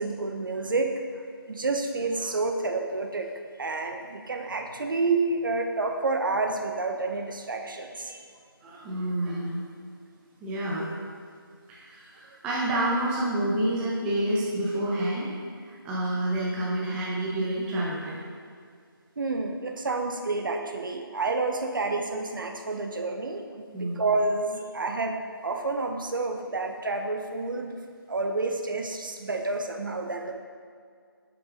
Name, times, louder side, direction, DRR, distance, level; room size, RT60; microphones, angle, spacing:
voice 1, 0.0-3.3 3.6-8.3 19.2-27.7 28.1-30.3, right 3 dB, 60° right, 4 dB, 0.8 m, -29 dB
voice 2, 8.6-9.6 10.4-10.9 11.7-15.3 15.6-18.1 23.7-24.0, right 1 dB, 5° right, -6 dB, 0.6 m, -28 dB
9.9 x 5.9 x 3.9 m, 2.1 s
figure-of-eight pair, 160°, 13 cm